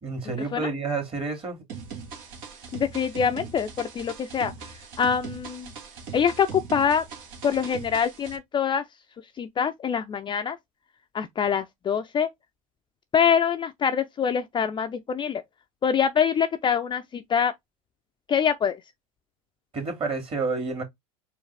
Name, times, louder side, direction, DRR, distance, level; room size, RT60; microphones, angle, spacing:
voice 1, 0.0-1.6 19.7-20.8, right 4 dB, 30° right, 2.2 m, -29 dB
sound 1, 1.7-8.4, right 6 dB, 65° right, 1.4 m, -40 dB
voice 2, 2.7-4.5 5.0-5.7 6.1-7.1 7.4-8.8 9.4-10.6 11.1-12.3 13.1-15.4 15.8-17.5 18.3-18.8, left 7 dB, 25° left, 0.4 m, -24 dB
4.6 x 2.5 x 3.3 m
hypercardioid pair, 85°, 18 cm